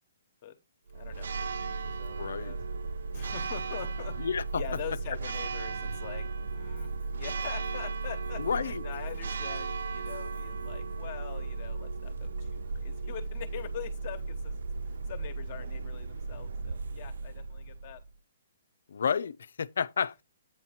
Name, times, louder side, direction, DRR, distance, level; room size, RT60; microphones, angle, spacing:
voice 1, 0.9-1.3 1.6-2.6 3.1-4.2 4.5-18.0, left 10 dB, 35° left, 1.0 m, -44 dB
Church bell, 0.9-18.1, right 4 dB, 80° right, 0.3 m, -36 dB
voice 2, 2.2-2.5 4.2-4.6 8.4-8.8 18.9-20.2, left 6 dB, 75° left, 0.4 m, -31 dB
8.7 x 2.9 x 5.8 m
hypercardioid pair, 165°, 0 cm